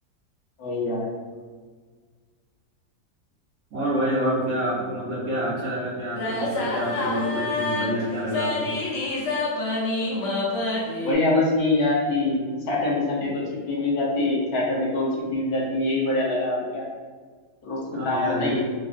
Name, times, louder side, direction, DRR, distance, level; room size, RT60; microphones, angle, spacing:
voice 1, 0.6-1.1 5.4-5.5 11.0-16.8 17.6-18.6, left 2 dB, 65° left, -3 dB, 1.3 m, -24 dB
voice 2, 3.7-8.7 17.9-18.6, equal, 55° right, -10 dB, 1.2 m, -27 dB
sound 1, 6.1-11.1, left 2 dB, 85° left, 1.3 m, -27 dB
4.0 x 2.3 x 2.4 m, 1.5 s
omnidirectional pair, 1.8 m